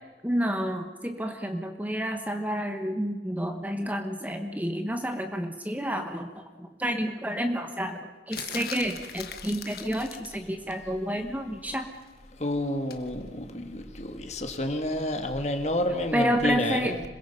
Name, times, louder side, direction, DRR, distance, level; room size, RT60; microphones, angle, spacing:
voice 1, 0.2-11.9 16.1-17.0, equal, 10° right, 6 dB, 1.1 m, -30 dB
sound 1, 8.3-10.4 12.9-13.1, left 8 dB, 55° left, 1.5 m, -39 dB
voice 2, 12.3-17.0, left 1 dB, 40° left, 5 dB, 1.9 m, -30 dB
26.5 x 22.0 x 5.5 m, 1.3 s
head